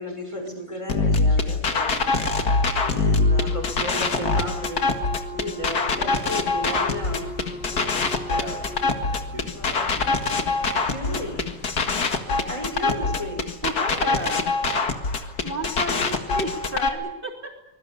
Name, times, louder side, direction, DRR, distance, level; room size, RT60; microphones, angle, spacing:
voice 1, 0.0-2.1 2.9-5.0 5.3-7.3 7.7-8.0 9.5-10.1 10.5-11.5 12.3-13.5, equal, 20° left, 2 dB, 5.8 m, -34 dB
sound 1, 0.9-16.9, left 3 dB, 85° left, 2.5 m, -24 dB
voice 2, 2.3-3.2 8.1-9.6, right 2 dB, 70° right, -4 dB, 5.5 m, -41 dB
Wind instrument woodwind instrument, 3.2-8.9, right 1 dB, 5° right, 1.4 m, -38 dB
Breathing, 6.3-12.1, left 3 dB, 50° left, 5.1 m, -42 dB
voice 3, 13.6-14.6 15.0-17.6, right 1 dB, 35° right, 2 dB, 4.1 m, -32 dB
25.5 x 21.0 x 8.5 m, 0.87 s
omnidirectional pair, 1.6 m